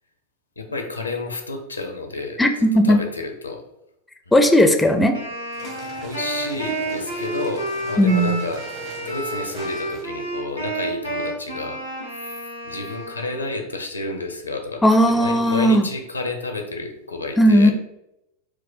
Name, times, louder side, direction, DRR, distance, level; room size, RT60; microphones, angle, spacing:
voice 1, 0.6-2.4 2.9-3.6 6.0-8.6 9.0-11.8 12.3-12.4 12.6-17.7, left 2 dB, 80° left, 4 dB, 0.6 m, -30 dB
voice 2, 2.4-3.0 4.3-5.2 8.0-8.4 14.8-15.9 17.4-17.7, equal, 5° left, 6 dB, 0.4 m, -16 dB
Wind instrument woodwind instrument, 5.1-13.5, right 1 dB, 85° right, 1.2 m, -30 dB
sound 1, 5.5-10.3, right 2 dB, 40° right, 0.9 m, -41 dB
4.6 x 2.1 x 4.2 m, 0.84 s
figure-of-eight pair, 90°, 0 cm